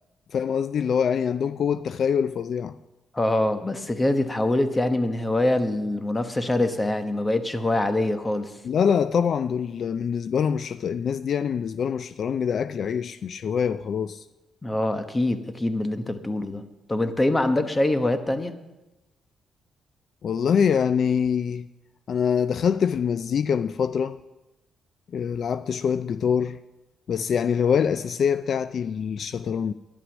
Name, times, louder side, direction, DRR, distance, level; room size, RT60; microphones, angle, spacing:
voice 1, 0.3-2.8 8.6-14.2 20.2-21.7 22.1-24.2 25.1-26.6 27.1-29.7, left 7 dB, 55° left, 0.3 m, -24 dB
voice 2, 3.1-8.5 14.6-16.6 16.9-18.6, left 1 dB, 15° left, 1.0 m, -24 dB
11.5 x 11.0 x 6.1 m
cardioid pair, 115°, 0 cm